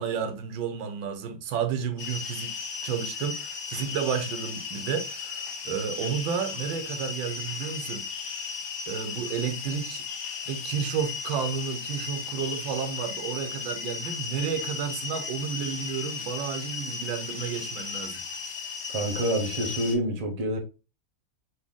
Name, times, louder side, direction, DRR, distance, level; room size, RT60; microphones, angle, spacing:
voice 1, 0.0-2.5 2.8-8.1 8.4-8.5 8.9-10.0 10.5-18.2, right 7 dB, 80° right, 1.4 m, -31 dB
sound 1, 2.0-19.9, left 6 dB, 70° left, 0.6 m, -35 dB
voice 2, 18.9-20.6, right 1 dB, 55° right, 0.4 m, -27 dB
4.1 x 2.7 x 3.6 m
omnidirectional pair, 2.2 m